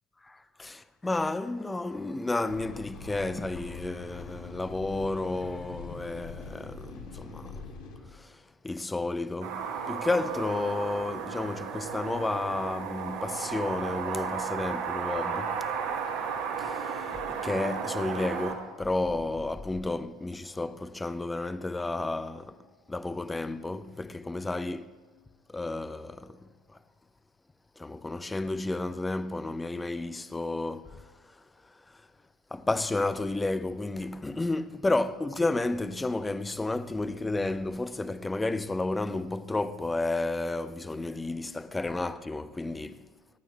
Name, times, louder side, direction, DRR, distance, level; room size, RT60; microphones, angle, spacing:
voice 1, 0.3-7.6 8.2-8.3 8.6-15.6 16.6-16.9 17.3-22.5 22.9-24.9 25.5-26.4 27.8-31.0 32.5-43.0, left 2 dB, 15° left, 0.5 m, -32 dB
sound 1, 2.5-8.0, left 4 dB, 80° left, 3.0 m, -43 dB
sound 2, 9.4-18.5, right 6 dB, 75° right, 1.5 m, -34 dB
26.0 x 8.9 x 2.4 m
supercardioid pair, 90°, 0 cm